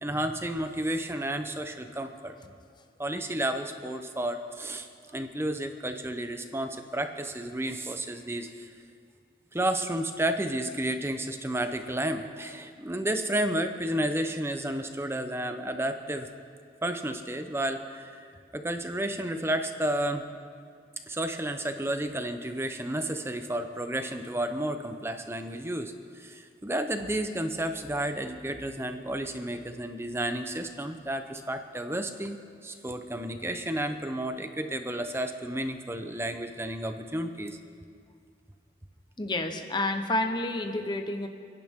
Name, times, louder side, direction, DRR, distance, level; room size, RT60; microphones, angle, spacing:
voice 1, 0.0-2.4 3.0-4.9 5.1-8.7 9.5-16.3 16.8-18.3 18.5-20.2 21.1-37.6, right 1 dB, 15° right, 7 dB, 0.8 m, -32 dB
voice 2, 39.2-41.3, left 2 dB, 25° left, 6 dB, 1.0 m, -29 dB
30.0 x 10.5 x 3.7 m, 2.2 s
head